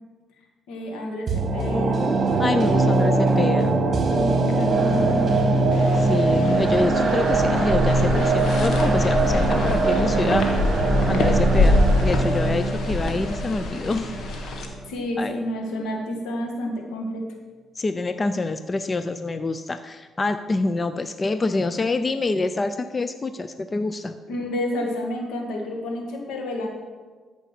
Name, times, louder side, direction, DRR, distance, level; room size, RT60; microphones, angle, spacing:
voice 1, 0.7-2.1 3.0-5.3 14.9-17.2 24.3-26.7, left 1 dB, 90° left, 1 dB, 1.9 m, -30 dB
sound 1, 1.3-14.4 14.7-14.8, right 3 dB, 40° right, 1.6 m, -22 dB
voice 2, 2.4-3.8 5.9-10.5 11.1-14.1 15.2-15.4 17.8-24.2, left 3 dB, 30° left, 10 dB, 0.5 m, -26 dB
sound 2, 5.7-14.6, left 2 dB, 70° left, 1.6 m, -25 dB
13.0 x 5.3 x 5.9 m, 1.4 s
cardioid pair, 90°, 0 cm